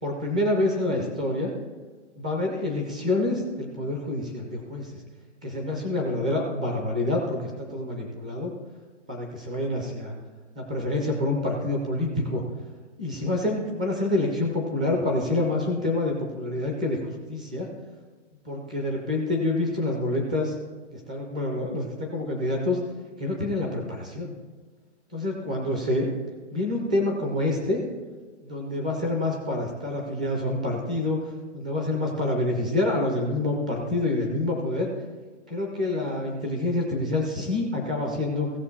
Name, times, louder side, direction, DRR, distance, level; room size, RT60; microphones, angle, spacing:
voice 1, 0.0-1.5 2.2-5.0 5.4-8.5 9.1-10.1 10.6-12.4 13.0-17.7 18.4-20.5 21.1-22.8 23.2-24.3 25.1-26.1 26.5-27.8 28.4-31.2 31.5-34.9 35.5-38.5, left 2 dB, 5° right, 1 dB, 0.3 m, -27 dB
17.0 x 6.6 x 4.3 m, 1.4 s
hypercardioid pair, 155°, 36 cm